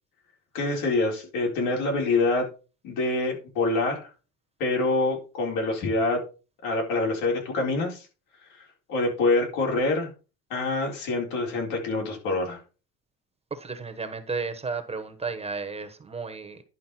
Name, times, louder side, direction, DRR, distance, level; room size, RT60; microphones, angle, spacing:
voice 1, 0.5-2.5 2.8-4.1 4.6-6.2 6.6-8.1 8.6-10.1 10.5-12.6, left 2 dB, 80° left, 0 dB, 4.2 m, -26 dB
voice 2, 13.5-16.6, right 4 dB, 20° right, 9 dB, 1.1 m, -33 dB
11.0 x 5.2 x 4.3 m, 0.33 s
cardioid pair, 130°, 33 cm